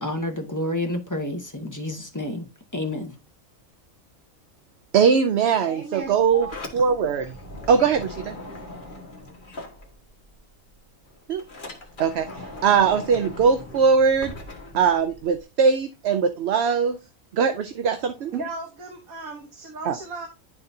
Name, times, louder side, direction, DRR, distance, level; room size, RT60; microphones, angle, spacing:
voice 1, 0.0-3.1, left 1 dB, 15° left, 0.8 m, -29 dB
voice 2, 4.9-6.5 6.7-7.4 7.7-8.4 11.3-11.4 12.0-14.3 14.7-17.0 17.3-18.3 19.8-20.0, right 6 dB, 60° right, 0.8 m, -21 dB
voice 3, 5.7-6.6 18.3-20.3, right 3 dB, 80° right, 1.7 m, -35 dB
Sliding door, 6.0-10.4 10.7-15.4, left 2 dB, 40° left, 1.5 m, -40 dB
11.0 x 3.8 x 2.7 m
omnidirectional pair, 1.5 m